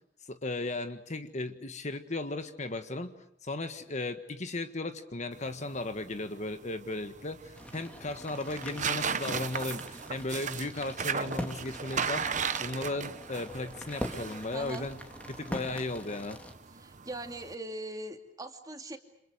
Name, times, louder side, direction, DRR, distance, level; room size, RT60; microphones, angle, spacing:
voice 1, 0.3-3.1 3.4-12.3 12.6-15.0 15.3-16.4, left 2 dB, 40° left, 9 dB, 1.5 m, -36 dB
sound 1, 5.3-17.5, right 6 dB, 40° right, 1.1 m, -37 dB
sound 2, 7.6-16.5, equal, 10° left, 2.6 m, -43 dB
voice 2, 14.5-14.9 16.8-19.0, right 1 dB, 20° right, 5 dB, 2.5 m, -40 dB
29.0 x 27.0 x 6.6 m, 0.73 s
head